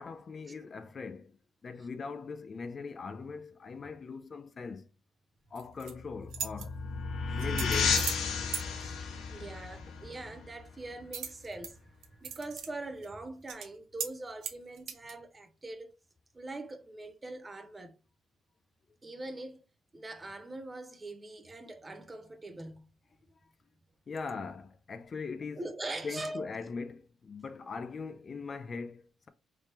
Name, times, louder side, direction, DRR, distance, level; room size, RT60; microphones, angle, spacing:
voice 1, 0.0-1.4 1.6-4.9 5.5-6.8 7.3-8.2 24.1-25.6 26.0-29.3, left 4 dB, 40° left, 0.4 m, -40 dB
sound 1, 5.5-5.9 6.3-6.7 7.4-8.2 8.5-8.6 11.1-11.7 12.0-12.7 13.0-13.1 13.5-13.7 14.0-14.1 14.4-15.1, right 8 dB, 80° right, 0.6 m, -38 dB
sound 2, 5.8-11.2, left 5 dB, 75° left, 0.8 m, -33 dB
voice 2, 9.3-11.8 12.2-15.9 16.3-17.9 19.0-19.6 19.9-22.9 25.6-26.5, right 2 dB, 25° right, 0.6 m, -42 dB
3.4 x 2.9 x 3.0 m
cardioid pair, 90°, 0 cm